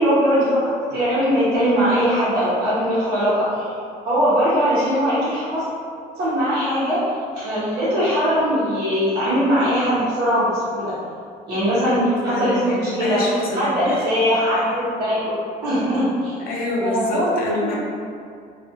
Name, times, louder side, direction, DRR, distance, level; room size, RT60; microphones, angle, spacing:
voice 1, 0.0-3.8 4.0-5.6 6.1-10.9 11.5-12.0 12.2-13.2 13.5-15.4 15.6-16.4 16.8-17.8, equal, 80° right, -12 dB, 0.9 m, -20 dB
voice 2, 11.8-14.0 16.5-17.8, left 2 dB, 60° left, -3 dB, 0.6 m, -27 dB
2.4 x 2.3 x 2.7 m, 2.3 s
cardioid pair, 110°, 17 cm